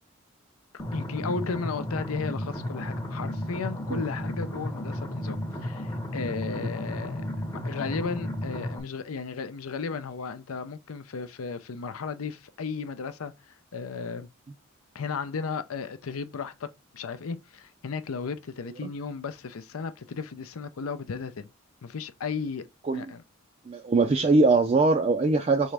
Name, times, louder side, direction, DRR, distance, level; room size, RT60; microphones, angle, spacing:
sound 1, 0.8-8.8, left 1 dB, 15° left, 0.7 m, -33 dB
voice 1, 0.9-7.2 7.5-13.3 13.7-14.3 14.9-16.7 16.9-21.5 21.8-22.7 22.9-23.2, left 5 dB, 85° left, 0.5 m, -34 dB
voice 2, 23.7-25.7, right 3 dB, 30° right, 0.3 m, -22 dB
4.1 x 3.5 x 3.3 m
head